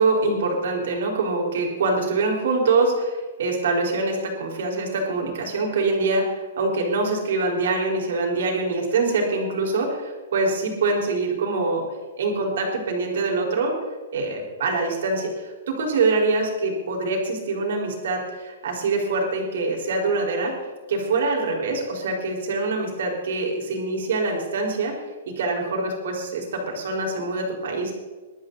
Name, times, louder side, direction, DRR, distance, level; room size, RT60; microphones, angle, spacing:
voice 1, 0.0-11.8 12.2-13.8 14.1-20.5 20.9-25.0 25.4-27.9, right 3 dB, 60° right, 1 dB, 4.2 m, -24 dB
21.0 x 12.5 x 4.0 m, 1.3 s
hypercardioid pair, 175°, 0 cm